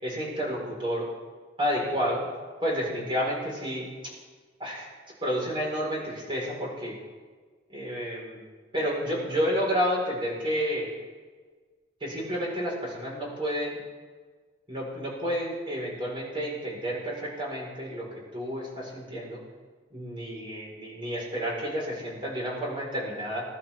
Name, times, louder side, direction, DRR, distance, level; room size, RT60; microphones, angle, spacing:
voice 1, 0.0-1.1 1.6-2.3 2.6-3.9 4.6-4.9 5.2-6.9 7.7-8.4 8.7-10.9 12.0-13.8 14.7-18.1 18.3-19.4 19.9-23.4, equal, 30° right, -4 dB, 4.7 m, -30 dB
21.0 x 11.5 x 3.7 m, 1.5 s
head